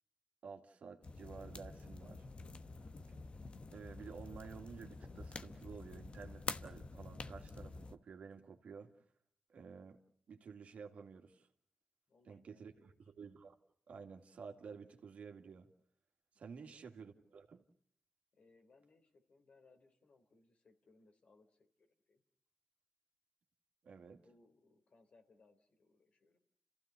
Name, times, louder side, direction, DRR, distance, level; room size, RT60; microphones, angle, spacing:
voice 1, 0.4-2.3 3.7-8.9 9.5-10.0 10.3-11.5 12.2-13.6 13.9-15.7 16.4-17.6 23.8-24.3, right 5 dB, 80° right, 4 dB, 2.1 m, -52 dB
sound 1, 1.0-8.0, left 3 dB, 55° left, 1.1 m, -48 dB
voice 2, 12.1-13.0 16.6-16.8 18.3-22.2 24.2-26.4, left 3 dB, 70° left, 5 dB, 3.6 m, -69 dB
30.0 x 15.5 x 8.1 m, 0.66 s
cardioid pair, 50°, 2 cm